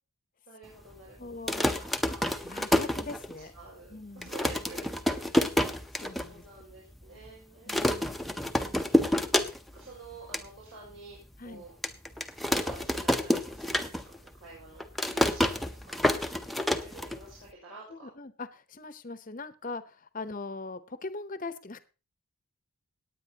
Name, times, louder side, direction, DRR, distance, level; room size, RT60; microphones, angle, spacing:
voice 1, 0.5-2.2 3.4-4.9 6.2-7.7 9.7-11.2 11.4-11.7 12.5-16.0 16.5-18.1, right 3 dB, 75° right, -6 dB, 6.0 m, -50 dB
voice 2, 1.2-1.8 2.4-3.5 3.9-4.3 5.7-6.4 7.7-8.2 11.4-11.6 17.9-21.8, left 3 dB, 35° left, 12 dB, 0.8 m, -41 dB
sound 1, 1.3-3.6 3.9-4.0 4.2-6.3 6.6-6.7 6.9-7.3 7.7-9.8 10.1-10.5 11.0-11.1 11.8-14.3 14.5-17.5, left 1 dB, ahead, 0.6 m, -28 dB
18.0 x 9.2 x 2.9 m, 0.33 s
head